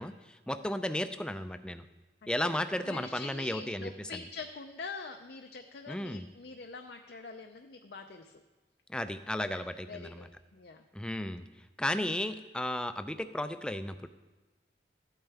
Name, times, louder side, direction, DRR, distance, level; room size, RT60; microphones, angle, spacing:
voice 1, 0.0-1.9 2.3-4.1 5.9-6.3 8.9-10.3 10.9-11.4 11.8-14.1, left 1 dB, 5° left, 10 dB, 0.3 m, -34 dB
voice 2, 2.8-8.4 9.4-10.8, left 4 dB, 65° left, 4 dB, 0.5 m, -45 dB
13.5 x 9.0 x 3.4 m, 1.2 s
head